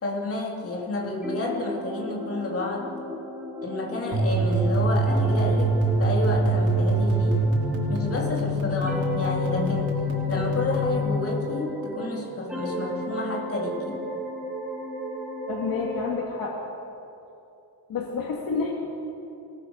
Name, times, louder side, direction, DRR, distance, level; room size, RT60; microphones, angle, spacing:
voice 1, 0.0-2.9 3.6-7.5 7.9-10.0 10.3-14.0, left 2 dB, 35° left, -2 dB, 4.0 m, -30 dB
sound 1, 1.2-8.4 8.8-12.2 12.5-16.2, right 1 dB, 5° right, 3.4 m, -34 dB
sound 2, 4.1-11.0, right 1 dB, 35° right, 5.1 m, -24 dB
voice 2, 15.5-16.6 17.9-18.7, left 5 dB, 60° left, 0 dB, 2.5 m, -29 dB
28.0 x 19.5 x 6.7 m, 2.8 s
cardioid pair, 165°, 39 cm